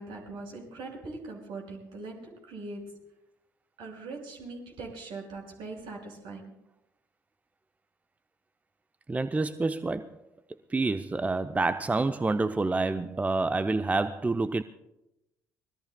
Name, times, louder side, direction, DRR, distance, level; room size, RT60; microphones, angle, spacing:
voice 1, 0.0-3.0 3.8-6.5, right 3 dB, 60° right, 5.5 m, -41 dB
voice 2, 9.1-10.2 10.7-14.6, right 3 dB, 15° right, 0.5 m, -28 dB
26.0 x 20.5 x 2.2 m
hypercardioid pair, 55°, 9 cm